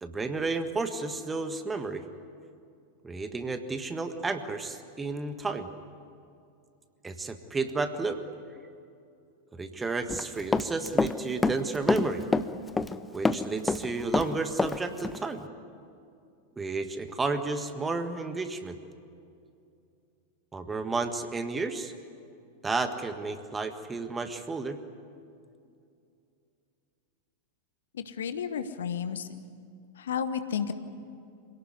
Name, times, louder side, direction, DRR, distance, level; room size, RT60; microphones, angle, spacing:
voice 1, 0.0-2.0 3.0-5.7 7.0-8.2 9.5-12.2 13.1-15.5 16.6-18.8 20.5-21.9 22.6-24.8, right 3 dB, 15° right, 8 dB, 1.6 m, -32 dB
Run, 10.1-11.2 11.4-13.0 13.3-14.8 15.0-15.2, left 3 dB, 10° left, 0.8 m, -26 dB
voice 2, 27.9-29.3 30.0-30.7, left 7 dB, 65° left, 10 dB, 1.3 m, -32 dB
26.5 x 18.0 x 9.7 m, 2.5 s
figure-of-eight pair, 90°, 0 cm